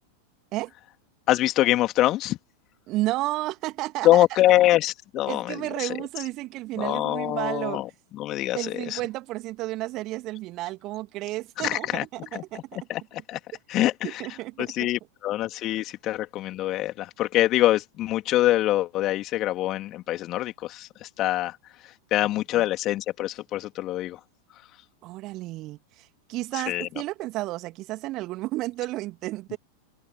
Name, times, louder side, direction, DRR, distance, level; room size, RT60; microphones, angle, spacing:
voice 1, 1.3-2.4 4.0-6.0 6.8-9.0 11.6-12.0 12.3-12.4 12.9-13.4 13.7-14.2 14.6-21.6 22.1-24.2 26.5-26.9, left 15 dB, 35° left, 3.4 m, -24 dB
voice 2, 2.9-4.3 5.3-7.8 8.5-12.8 13.8-14.9 22.5-22.6 25.0-29.6, right 18 dB, 40° right, 2.3 m, -32 dB
figure-of-eight pair, 90°, 0 cm